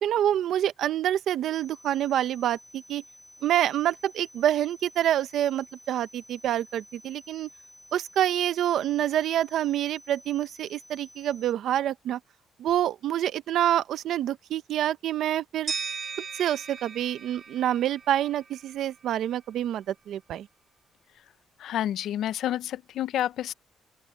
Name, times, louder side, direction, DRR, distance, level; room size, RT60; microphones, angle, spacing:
voice 1, 0.0-3.0 3.4-7.5 7.9-12.2 12.6-15.7 16.3-20.5, right 11 dB, 75° right, 0.8 m, -27 dB
sound 1, 1.5-11.5, equal, ahead, 4.1 m, -53 dB
sound 2, 15.7-18.6, right 5 dB, 45° right, 1.7 m, -37 dB
voice 2, 21.6-23.5, left 11 dB, 75° left, 0.7 m, -29 dB
open air
cardioid pair, 90°, 0 cm